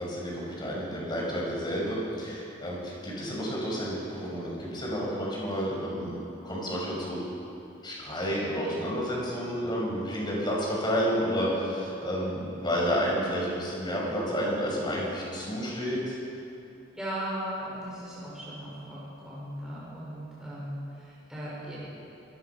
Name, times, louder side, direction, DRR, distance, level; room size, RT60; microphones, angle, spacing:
voice 1, 0.0-6.2 6.4-7.2 7.8-16.2, equal, 25° left, -4 dB, 6.2 m, -30 dB
voice 2, 16.9-22.0, equal, 5° right, -9 dB, 6.1 m, -37 dB
27.0 x 19.0 x 6.0 m, 2.8 s
head